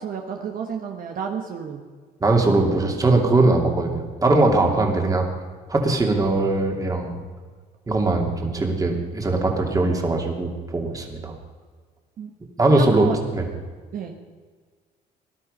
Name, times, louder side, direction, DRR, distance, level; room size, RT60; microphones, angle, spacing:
voice 1, 0.0-1.8 12.2-12.3 12.7-13.2 13.9-14.2, right 7 dB, 55° right, 2 dB, 1.5 m, -31 dB
voice 2, 2.2-5.3 5.7-7.1 7.9-11.3 12.6-13.5, right 2 dB, 20° right, 2 dB, 2.6 m, -20 dB
18.5 x 11.5 x 5.5 m, 1.5 s
cardioid pair, 110°, 17 cm